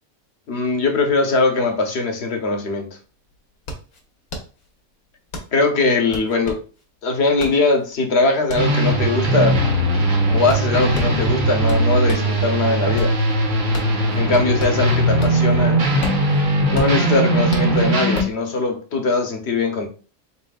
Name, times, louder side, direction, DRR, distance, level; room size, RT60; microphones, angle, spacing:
voice 1, 0.5-2.9 5.5-6.6 7.0-9.6 10.3-13.1 14.2-15.8 16.7-19.9, left 3 dB, 55° left, 4 dB, 1.0 m, -20 dB
sound 1, 3.1-12.4 12.7-15.6 15.8-18.4, left 1 dB, 75° left, 1.5 m, -34 dB
sound 2, 8.6-18.2, right 1 dB, 60° right, 1.5 m, -19 dB
4.1 x 4.0 x 2.3 m, 0.35 s
omnidirectional pair, 1.5 m